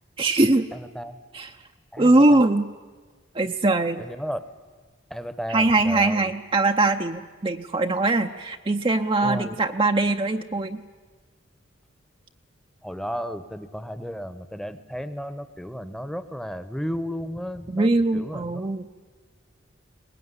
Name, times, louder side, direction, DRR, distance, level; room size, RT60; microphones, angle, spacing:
voice 1, 0.2-0.7 1.3-1.5 2.0-2.7 3.3-4.0 5.5-10.8 17.7-18.9, right 2 dB, 25° right, 5 dB, 0.6 m, -21 dB
voice 2, 0.7-1.2 1.9-2.4 4.0-4.4 5.1-6.3 9.2-9.6 12.8-18.7, equal, ahead, 12 dB, 1.0 m, -33 dB
23.0 x 20.0 x 9.7 m, 1.4 s
head